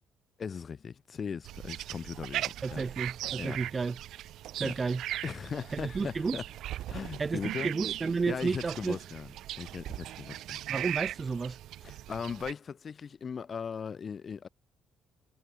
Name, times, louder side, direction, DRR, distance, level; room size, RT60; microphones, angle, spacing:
voice 1, 0.4-2.8 3.4-3.6 4.6-4.7 5.2-6.4 6.9-7.7 8.3-9.3 9.6-10.6 11.8-14.5, left 6 dB, 40° left, 3.2 m, -38 dB
sound 1, 1.4-12.5, right 13 dB, 75° right, 1.8 m, -39 dB
voice 2, 2.6-4.0 4.6-5.0 5.7-6.4 7.2-9.0 10.7-11.6, right 4 dB, 30° right, 0.4 m, -32 dB
cardioid pair, 105°, 0 cm